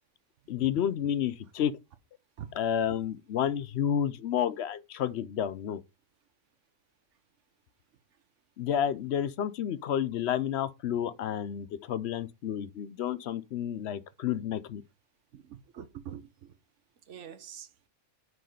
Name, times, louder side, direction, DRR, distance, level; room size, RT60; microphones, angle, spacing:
voice 1, 0.5-1.7 2.5-5.8 8.6-14.8, left 9 dB, 60° left, 0.8 m, -30 dB
voice 2, 15.3-16.5 17.1-17.7, right 9 dB, 60° right, 1.1 m, -44 dB
6.2 x 4.7 x 5.0 m
omnidirectional pair, 1.5 m